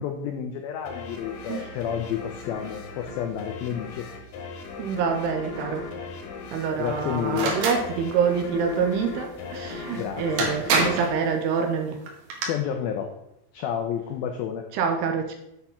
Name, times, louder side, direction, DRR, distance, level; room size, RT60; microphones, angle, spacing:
voice 1, 0.0-4.1 6.0-6.1 6.5-7.6 9.9-10.5 12.5-13.1 13.5-14.6, left 9 dB, 90° left, 5 dB, 2.1 m, -30 dB
sound 1, 0.9-12.1, left 4 dB, 70° left, 2.5 m, -39 dB
voice 2, 4.8-5.9 6.5-12.0 14.7-15.4, right 6 dB, 80° right, 4 dB, 2.5 m, -26 dB
sound 2, 7.3-7.8 9.9-10.0 10.4-11.1 12.1-12.5, right 3 dB, 65° right, 2.4 m, -25 dB
8.1 x 4.3 x 5.6 m, 0.83 s
omnidirectional pair, 5.0 m